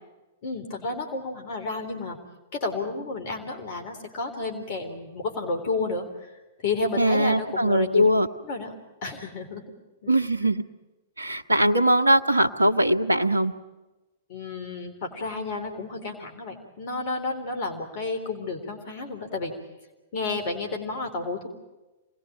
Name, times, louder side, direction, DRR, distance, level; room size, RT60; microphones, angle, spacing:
voice 1, 0.4-2.2 2.5-6.4 6.6-8.0 8.4-8.7 9.0-9.6 10.0-10.1 14.3-19.5 20.1-21.5, left 3 dB, 50° left, 5 dB, 3.9 m, -31 dB
voice 2, 7.0-8.3 10.1-10.6 11.2-13.5, right 1 dB, 85° right, 9 dB, 1.4 m, -21 dB
27.0 x 20.0 x 8.9 m, 1.1 s
figure-of-eight pair, 105°, 0 cm